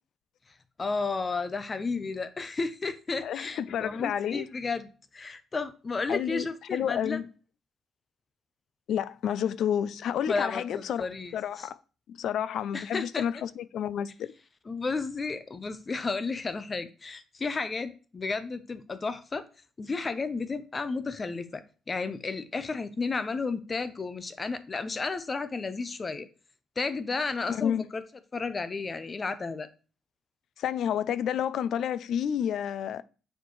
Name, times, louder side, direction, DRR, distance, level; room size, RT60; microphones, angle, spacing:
voice 1, 0.8-7.2 10.3-11.7 12.7-13.3 14.7-19.4 19.8-21.6 21.9-26.3 26.8-28.0 28.3-29.7, left 4 dB, 30° left, 0.6 m, -32 dB
voice 2, 3.2-4.5 6.1-7.3 8.9-11.1 11.3-11.8 12.1-14.3 27.5-27.8 30.6-33.0, left 9 dB, 70° left, 0.3 m, -30 dB
6.9 x 4.4 x 3.1 m
cardioid pair, 90°, 0 cm